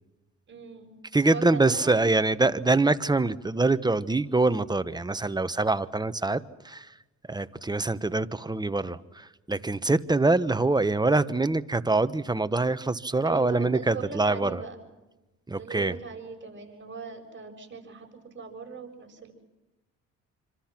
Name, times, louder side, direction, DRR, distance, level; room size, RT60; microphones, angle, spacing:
voice 1, 0.5-1.0 1.3-2.1 13.2-14.8 15.5-18.1 18.3-19.3, right 5 dB, 40° right, 3 dB, 7.5 m, -39 dB
voice 2, 1.1-6.9 7.3-14.6 15.5-16.0, right 2 dB, 15° right, 12 dB, 1.1 m, -25 dB
27.5 x 26.0 x 6.0 m, 1.0 s
cardioid pair, 90°, 30 cm